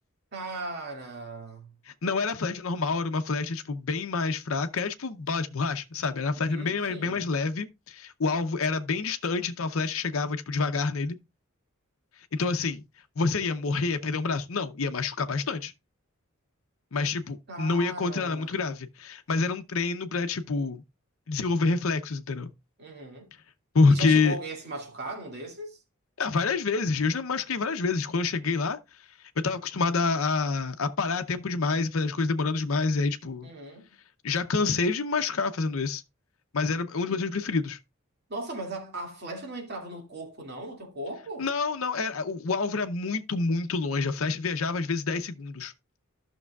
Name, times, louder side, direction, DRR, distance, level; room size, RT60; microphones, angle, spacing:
voice 1, 0.3-1.7 6.4-7.2 17.5-18.6 22.8-23.3 23.9-25.8 33.4-33.9 37.1-37.2 38.3-41.5, right 2 dB, 50° right, 2.3 m, -38 dB
voice 2, 1.9-11.2 12.3-12.8 13.2-15.7 16.9-20.8 21.3-22.5 23.7-24.4 26.2-28.8 29.4-33.5 34.2-36.0 36.5-37.8 41.4-45.7, left 4 dB, 70° left, 0.7 m, -27 dB
13.5 x 6.1 x 2.3 m
head